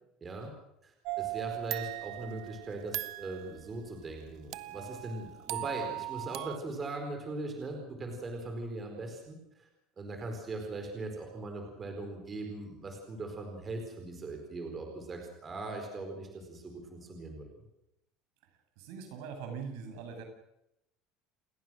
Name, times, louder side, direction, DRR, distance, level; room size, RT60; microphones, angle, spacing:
voice 1, 0.2-0.5 0.8-9.7 10.0-17.6, right 2 dB, 20° right, 4 dB, 4.4 m, -40 dB
sound 1, 1.0-3.5 4.5-6.6, right 18 dB, 50° right, 0.9 m, -38 dB
voice 2, 18.4-20.2, right 6 dB, 75° right, 5 dB, 6.9 m, -42 dB
29.0 x 21.0 x 6.4 m, 0.85 s
cardioid pair, 175°, 0 cm